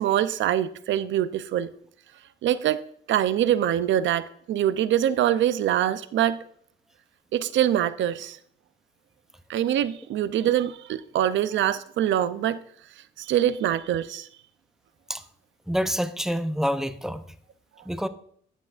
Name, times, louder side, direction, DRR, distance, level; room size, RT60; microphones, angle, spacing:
voice 1, 0.0-1.7 2.4-2.8 3.1-6.4 7.3-8.4 9.5-12.6 13.2-14.3, right 11 dB, 70° right, 0.6 m, -24 dB
voice 2, 15.7-17.2 17.9-18.1, equal, ahead, 0.6 m, -27 dB
12.0 x 8.5 x 2.5 m
cardioid pair, 90°, 20 cm